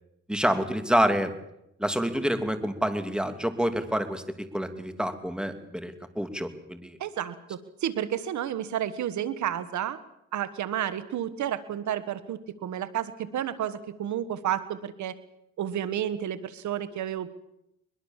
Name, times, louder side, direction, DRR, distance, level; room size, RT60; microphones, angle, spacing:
voice 1, 0.3-1.3 1.8-7.0, equal, 5° right, 9 dB, 2.8 m, -27 dB
voice 2, 7.0-10.0 10.3-15.1 15.6-17.3, right 10 dB, 70° right, 13 dB, 1.5 m, -31 dB
22.5 x 22.0 x 7.4 m, 0.82 s
cardioid pair, 90°, 30 cm